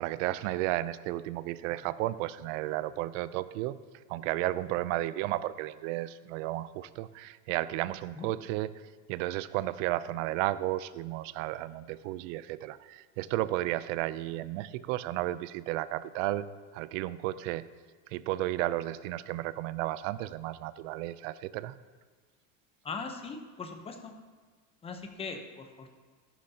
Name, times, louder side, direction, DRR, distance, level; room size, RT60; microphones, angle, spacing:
voice 1, 0.0-3.8 4.1-8.7 9.1-16.5 16.7-17.7 18.1-21.8, right 15 dB, 75° right, 16 dB, 0.5 m, -33 dB
voice 2, 22.8-24.1 24.8-25.9, left 4 dB, 15° left, 5 dB, 0.7 m, -40 dB
13.5 x 11.0 x 2.8 m, 1.5 s
cardioid pair, 155°, 39 cm